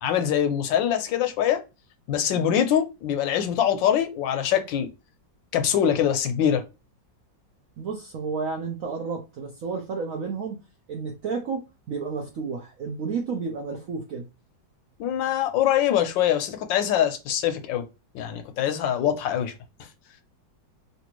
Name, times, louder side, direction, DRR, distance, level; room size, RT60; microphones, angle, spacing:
voice 1, 0.0-1.6 2.1-4.9 5.5-6.6 15.0-17.8 18.1-19.5, left 9 dB, 80° left, 1.3 m, -23 dB
voice 2, 7.8-10.6 10.9-11.6 11.9-14.2, right 5 dB, 70° right, 0.8 m, -31 dB
3.3 x 2.7 x 3.0 m
omnidirectional pair, 2.1 m